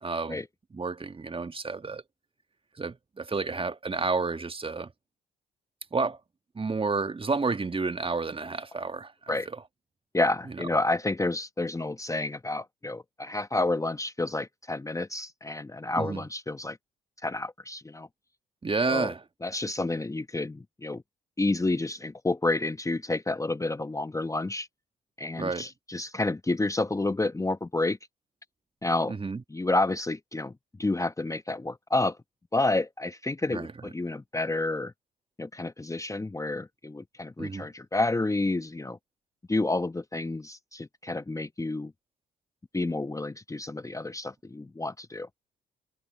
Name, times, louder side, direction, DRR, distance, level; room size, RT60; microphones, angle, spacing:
voice 1, 0.0-0.4 0.7-2.0 2.8-4.9 5.9-6.2 6.5-9.6 16.0-16.2 18.6-19.2 25.3-25.7 29.1-29.4 33.5-33.7 37.4-37.7, right 4 dB, 25° right, 1.6 m, -30 dB
voice 2, 10.1-16.8 17.2-18.1 18.9-19.1 19.4-21.0 21.4-24.7 25.2-28.0 28.8-29.2 29.5-30.5 30.8-32.2 32.5-34.9 35.4-39.0 39.5-41.9 42.7-45.3, left 2 dB, 15° left, 1.0 m, -29 dB
hypercardioid pair, 50°, 21 cm